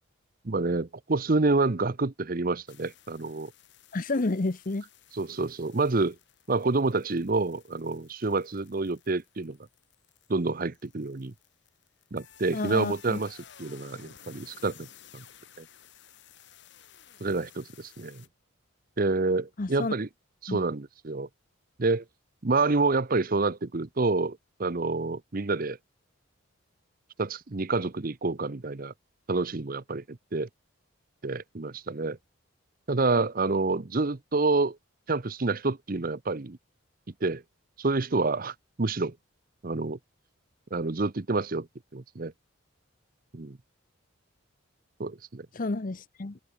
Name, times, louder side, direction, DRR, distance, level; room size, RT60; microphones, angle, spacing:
voice 1, 0.4-3.5 5.1-6.2 6.5-9.6 10.3-11.3 12.1-14.9 15.1-15.2 15.6-15.7 17.2-18.2 19.0-20.1 20.4-21.3 21.8-22.0 22.4-25.8 27.2-28.9 29.3-30.5 31.2-32.2 32.9-34.8 35.1-36.6 37.2-37.4 37.8-39.2 39.6-40.0 40.7-41.7 41.9-42.3 43.3-43.6 45.0-45.5, right 3 dB, 45° right, 0.8 m, -28 dB
sound 1, 2.7-18.3, left 9 dB, 55° left, 2.7 m, -55 dB
voice 2, 3.9-4.8 12.5-13.2 19.6-19.9 20.5-20.6 45.5-46.4, left 2 dB, 40° left, 0.7 m, -30 dB
head